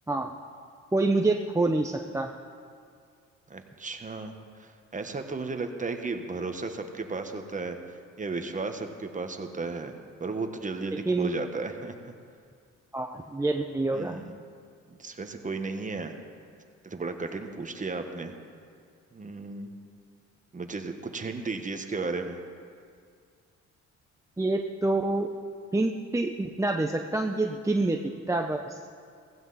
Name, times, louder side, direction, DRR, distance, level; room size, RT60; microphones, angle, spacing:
voice 1, 0.9-2.3 11.1-11.3 12.9-14.2 24.4-25.3 25.7-28.0 28.3-28.8, right 2 dB, 10° right, 2 dB, 0.7 m, -27 dB
voice 2, 3.5-4.3 4.6-9.9 10.2-12.0 13.9-14.4 14.9-16.1 16.8-18.3 19.1-19.7 20.5-22.4, right 3 dB, 25° right, 6 dB, 1.3 m, -34 dB
15.5 x 15.5 x 4.1 m, 2.2 s
cardioid pair, 90°, 30 cm